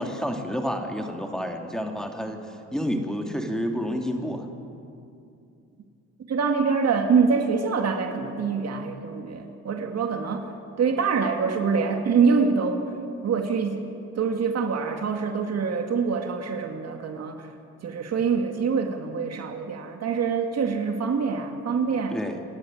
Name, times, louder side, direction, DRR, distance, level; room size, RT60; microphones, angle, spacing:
voice 1, 0.0-2.4 2.7-4.5 22.1-22.4, equal, ahead, 3 dB, 2.6 m, -29 dB
voice 2, 6.3-10.5 10.8-12.9 13.2-17.5 17.8-22.2, right 5 dB, 55° right, 5 dB, 2.1 m, -25 dB
28.0 x 12.0 x 10.0 m, 2.6 s
cardioid pair, 90°, 30 cm